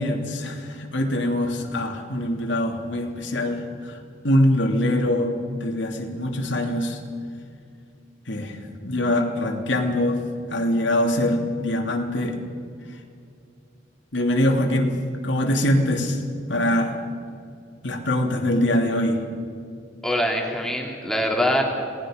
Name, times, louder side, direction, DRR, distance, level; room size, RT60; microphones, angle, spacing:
voice 1, 0.0-3.6 4.2-5.3 5.6-7.0 8.3-8.5 8.8-10.2 10.5-12.4 14.1-14.9 15.2-16.2 16.5-16.9 17.8-19.2, left 1 dB, 75° left, 3 dB, 2.7 m, -23 dB
voice 2, 20.0-21.6, equal, ahead, 0 dB, 2.7 m, -23 dB
27.5 x 19.0 x 5.1 m, 2.4 s
head